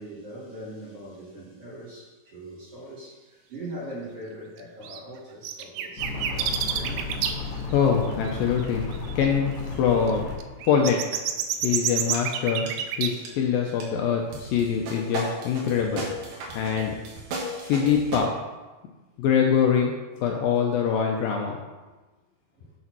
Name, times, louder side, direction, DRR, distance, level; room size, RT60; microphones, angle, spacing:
voice 1, 0.0-7.1 20.1-20.2 22.5-22.7, right 1 dB, 40° right, -7 dB, 3.1 m, -41 dB
sound 1, 4.8-5.0 5.4-7.3 7.7-7.8 8.3-8.4 8.6-8.7 8.9-9.2 10.1-13.1, right 10 dB, 85° right, 2.7 m, -28 dB
sound 2, 6.0-10.4, left 4 dB, 55° left, 2.7 m, -33 dB
voice 2, 7.7-10.3 10.6-11.1 11.6-17.0 17.6-18.3 19.2-19.9 20.2-21.6, left 7 dB, 75° left, 1 dB, 2.3 m, -24 dB
sound 3, 12.1-12.2 12.7-12.9 13.2-13.3 13.8-13.9 14.3-18.2, right 1 dB, 65° right, 3.3 m, -35 dB
7.1 x 6.9 x 6.1 m, 1.2 s
omnidirectional pair, 4.6 m